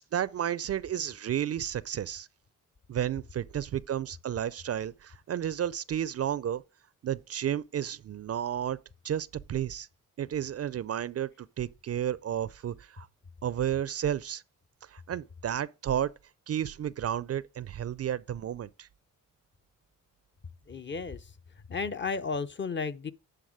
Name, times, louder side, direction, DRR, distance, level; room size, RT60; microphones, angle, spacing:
voice 1, 0.1-2.3 2.9-6.6 7.0-8.8 9.0-9.9 10.2-13.1 13.4-14.4 14.8-16.1 16.5-18.9, right 10 dB, 45° right, 0.4 m, -32 dB
voice 2, 20.7-21.3 21.7-23.1, left 5 dB, 35° left, 0.6 m, -33 dB
10.0 x 3.8 x 4.9 m
cardioid pair, 65°, 34 cm